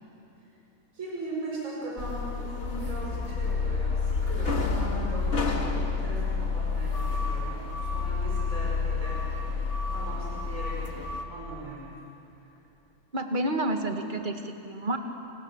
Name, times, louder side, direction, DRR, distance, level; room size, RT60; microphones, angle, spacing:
voice 1, 0.9-9.5 9.8-11.9 12.4-12.6, right 1 dB, 60° right, -5 dB, 5.8 m, -39 dB
sound 1, 2.0-11.2, left 4 dB, 50° left, 2.1 m, -29 dB
voice 2, 13.1-15.0, right 1 dB, 35° right, 4 dB, 2.1 m, -29 dB
29.5 x 27.5 x 7.3 m, 2.9 s
omnidirectional pair, 1.6 m